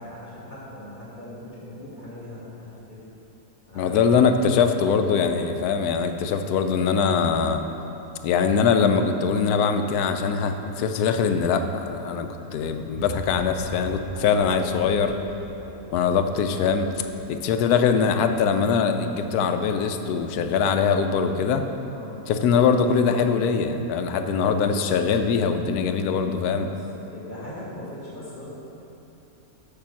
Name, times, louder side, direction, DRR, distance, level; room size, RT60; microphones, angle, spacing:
voice 1, 0.0-3.0 3.7-4.1 5.0-5.3 14.1-14.4 15.6-15.9 21.9-22.2 24.1-24.6 26.6-28.5, left 1 dB, 30° left, -9 dB, 2.5 m, -40 dB
voice 2, 3.8-7.6 8.2-15.1 15.9-16.9 17.3-21.7 22.3-26.7, left 6 dB, 90° left, 7 dB, 1.1 m, -22 dB
sound 1, 12.9-19.1, left 1 dB, 25° right, 1.6 m, -41 dB
6.7 x 5.8 x 7.1 m, 2.9 s
omnidirectional pair, 1.6 m